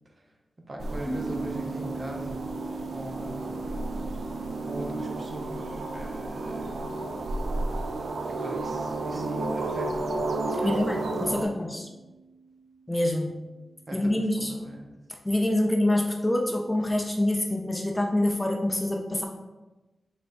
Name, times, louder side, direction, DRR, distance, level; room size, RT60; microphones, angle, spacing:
voice 1, 0.7-2.4 2.9-3.6 4.7-6.8 8.3-11.6 13.9-14.9, right 1 dB, 40° right, 1 dB, 0.6 m, -41 dB
sound 1, 0.8-11.5, right 2 dB, 85° right, 0.4 m, -32 dB
sound 2, 1.0-13.8, right 3 dB, 5° right, 1.1 m, -42 dB
voice 2, 10.6-11.9 12.9-13.3 13.9-14.5 15.2-19.3, left 1 dB, 10° left, 1 dB, 0.4 m, -26 dB
3.4 x 3.1 x 3.9 m, 1.1 s
wide cardioid pair, 110°, 0 cm